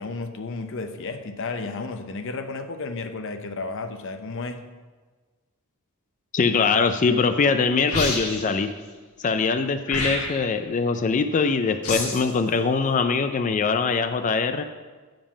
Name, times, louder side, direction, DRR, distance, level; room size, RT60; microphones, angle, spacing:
voice 1, 0.0-4.6, left 3 dB, 60° left, 8 dB, 0.7 m, -32 dB
voice 2, 6.3-8.7 9.2-14.6, left 4 dB, 35° left, 8 dB, 0.4 m, -22 dB
sound 1, 7.9-8.6 9.9-10.6 11.8-12.3, left 2 dB, 90° left, 1.8 m, -28 dB
7.2 x 5.2 x 7.1 m, 1.4 s
head